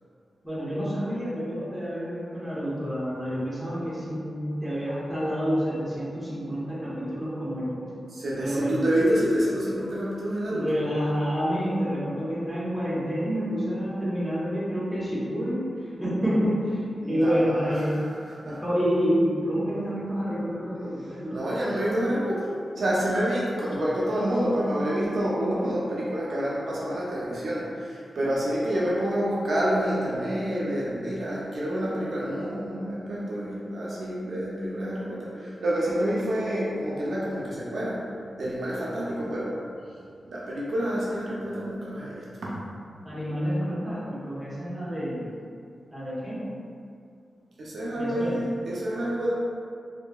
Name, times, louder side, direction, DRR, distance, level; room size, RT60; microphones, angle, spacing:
voice 1, 0.4-7.8 8.4-8.8 10.5-15.7 15.9-18.1 18.6-21.4 43.0-45.3 45.9-46.4 48.0-48.4, equal, ahead, -10 dB, 0.7 m, -28 dB
voice 2, 8.1-10.7 17.0-18.6 20.2-38.1 38.4-39.6 40.2-42.6 47.6-49.3, equal, 60° right, -6 dB, 0.4 m, -28 dB
2.8 x 2.5 x 2.2 m, 2.3 s
wide cardioid pair, 175°, 0 cm